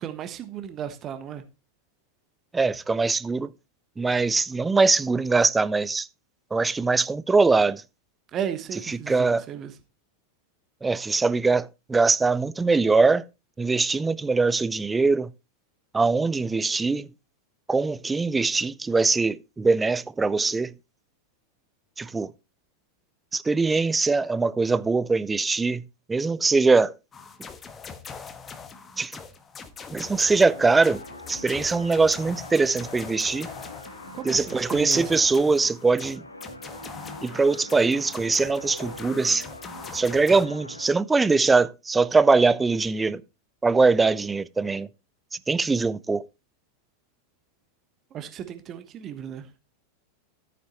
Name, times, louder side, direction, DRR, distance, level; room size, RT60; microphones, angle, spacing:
voice 1, 0.0-1.4 8.3-9.7 34.1-35.2 48.1-49.5, right 9 dB, 30° right, 1.3 m, -35 dB
voice 2, 2.5-3.5 4.0-6.1 6.5-7.8 9.1-9.4 10.8-13.2 13.6-15.3 15.9-17.1 17.7-20.7 22.0-22.3 23.3-25.8 26.1-26.9 29.0-29.2 29.9-31.0 31.3-33.5 34.2-36.2 37.2-39.4 39.9-43.2 43.6-44.9 45.5-46.2, right 4 dB, 10° right, 0.5 m, -22 dB
sound 1, 27.1-40.5, left 5 dB, 20° left, 1.3 m, -42 dB
sound 2, 29.8-40.9, left 1 dB, 80° left, 1.9 m, -43 dB
13.5 x 9.2 x 3.0 m
figure-of-eight pair, 90°, 0 cm